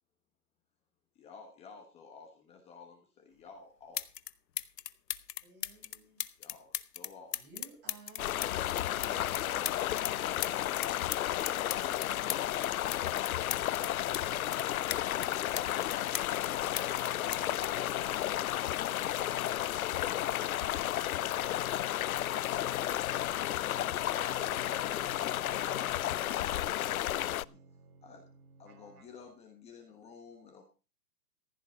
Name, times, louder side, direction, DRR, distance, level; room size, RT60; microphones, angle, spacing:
voice 1, 1.1-4.1 6.4-7.4 26.5-27.6 28.0-28.2 28.6-30.6, left 5 dB, 15° left, 5 dB, 1.2 m, -54 dB
sound 1, 3.5-3.6 3.9-4.3 4.6-10.1 10.4-14.2 14.5-16.5 16.8-18.6 19.5-19.7, left 10 dB, 80° left, 1.0 m, -38 dB
voice 2, 5.4-6.2 7.3-10.1, right 3 dB, 20° right, -1 dB, 6.4 m, -55 dB
sound 2, 8.2-27.4, left 13 dB, 65° left, 0.5 m, -32 dB
voice 3, 9.1-11.3 11.7-12.4, right 5 dB, 85° right, 9 dB, 4.1 m, -63 dB
sound 3, 24.2-29.4, right 5 dB, 65° right, 1.9 m, -55 dB
15.0 x 9.2 x 5.2 m, 0.34 s
hypercardioid pair, 155°, 48 cm